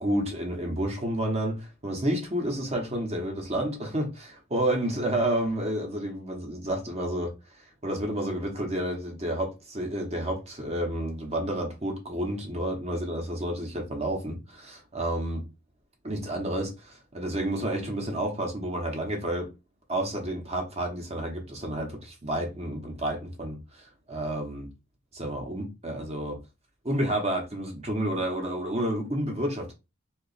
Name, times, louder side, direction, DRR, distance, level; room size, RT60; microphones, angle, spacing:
voice 1, 0.0-15.4 16.0-19.5 19.9-24.7 25.1-26.4 26.8-29.7, right 1 dB, 30° right, 0.9 m, -30 dB
2.9 x 2.4 x 4.0 m
head